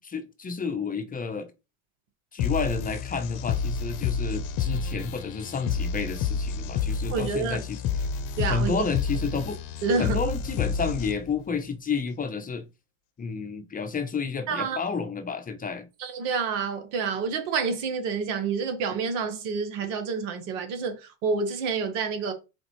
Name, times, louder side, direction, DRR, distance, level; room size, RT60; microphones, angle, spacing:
voice 1, 0.0-1.5 2.3-7.8 8.5-9.6 10.0-12.7 13.2-15.9, left 5 dB, 20° left, 0.8 m, -30 dB
sound 1, 2.4-11.4, left 6 dB, 55° left, 0.8 m, -30 dB
voice 2, 7.1-7.6 8.4-8.9 9.8-10.2 14.5-14.8 16.0-22.3, right 5 dB, 70° right, 1.4 m, -28 dB
4.3 x 3.9 x 3.1 m
supercardioid pair, 95°, 38 cm